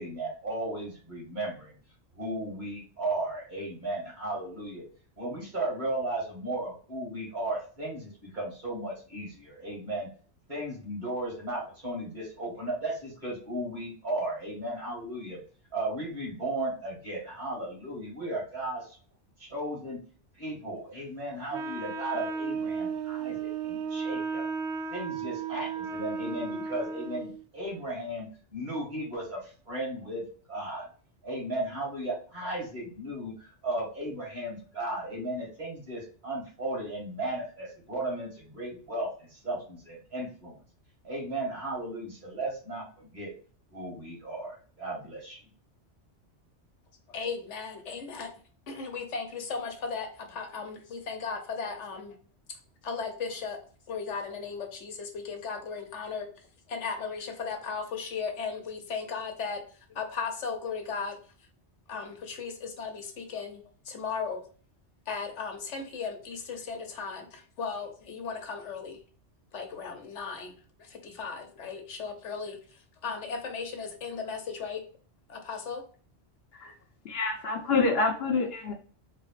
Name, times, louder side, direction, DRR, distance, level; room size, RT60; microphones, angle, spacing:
voice 1, 0.0-1.7 2.2-4.8 5.2-10.1 10.5-15.4 15.7-19.0 19.4-20.0 20.4-24.4 24.9-28.3 28.5-30.2 30.5-30.9 31.2-40.6 41.0-43.3 43.7-45.4, right 1 dB, 40° right, -3 dB, 2.1 m, -35 dB
Wind instrument woodwind instrument, 21.5-27.4, right 5 dB, 80° right, 0.9 m, -34 dB
voice 2, 47.1-48.3 48.7-52.1 52.8-53.6 53.9-56.2 56.7-59.6 59.9-61.2 61.9-64.4 65.1-69.0 69.5-70.5 70.8-72.6 73.0-74.8 75.3-75.8, left 5 dB, 90° left, 4 dB, 1.2 m, -36 dB
voice 3, 77.0-78.7, left 3 dB, 60° left, 2 dB, 0.9 m, -27 dB
4.0 x 3.0 x 3.1 m, 0.41 s
omnidirectional pair, 1.2 m